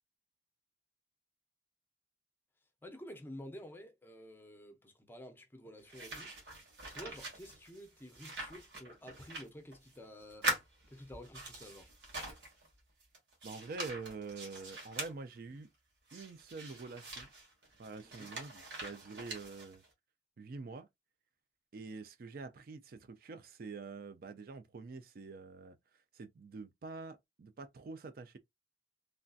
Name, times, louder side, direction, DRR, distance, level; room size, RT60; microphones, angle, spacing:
voice 1, 2.8-10.5 10.9-11.9 18.0-18.3, equal, 10° left, 0.6 m, -51 dB
sound 1, 5.9-10.0 10.3-12.7 13.0-15.1 16.1-19.9, right 2 dB, 85° right, 1.4 m, -43 dB
voice 2, 13.4-15.7 16.1-17.3 17.8-19.8 20.4-20.9 21.7-28.4, right 4 dB, 55° right, 0.4 m, -46 dB
3.3 x 2.6 x 2.3 m
head